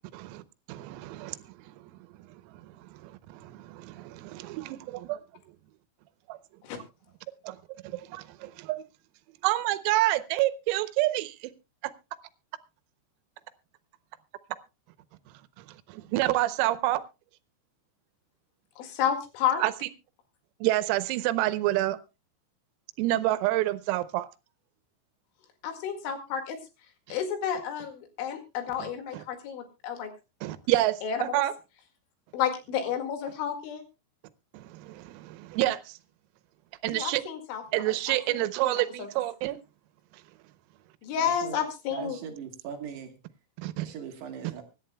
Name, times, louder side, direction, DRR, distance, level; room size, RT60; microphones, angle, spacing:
voice 1, 0.1-0.4 0.7-5.2 6.3-6.4 7.4-7.6 7.8-8.8 9.4-11.5 11.8-11.9 15.3-17.0 19.6-19.9 20.6-22.0 23.0-24.3 28.8-29.2 30.4-31.5 34.5-36.0 36.8-37.2 37.7-39.6 40.1-40.2 43.6-43.9, right 16 dB, 90° right, 3.5 m, -29 dB
voice 2, 18.8-19.6 25.6-26.6 27.1-30.1 31.0-31.2 32.3-33.8 36.9-37.6 37.9-38.4 38.7-39.1 41.0-42.2, left 8 dB, 70° left, 4.2 m, -31 dB
voice 3, 41.2-41.6 41.9-43.1 43.8-44.6, right 7 dB, 65° right, 3.1 m, -39 dB
24.5 x 11.0 x 2.2 m
omnidirectional pair, 6.0 m